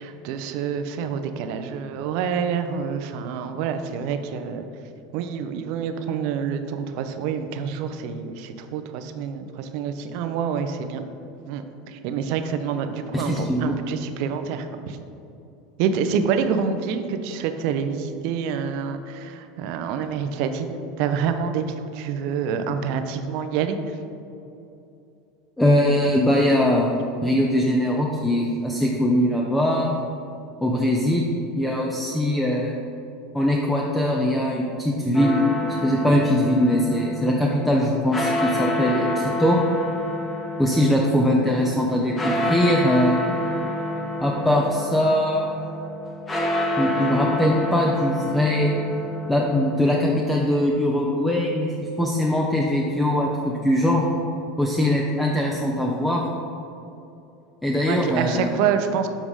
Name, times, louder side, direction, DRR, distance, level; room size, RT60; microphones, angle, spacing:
voice 1, 0.0-4.6 5.1-11.0 11.5-15.0 15.8-24.0 57.8-59.1, right 7 dB, 65° right, 8 dB, 0.5 m, -27 dB
voice 2, 13.1-13.8 25.6-26.9 27.2-30.0 30.6-31.3 31.6-32.7 33.3-35.4 35.8-39.6 40.6-43.2 44.2-45.5 46.8-48.7 49.3-54.0 54.6-56.2 57.6-58.6, left 1 dB, 10° left, -1 dB, 0.6 m, -21 dB
sound 1, 35.1-50.0, left 1 dB, 25° left, 1.0 m, -28 dB
7.3 x 4.8 x 3.6 m, 2.7 s
hypercardioid pair, 95°, 0 cm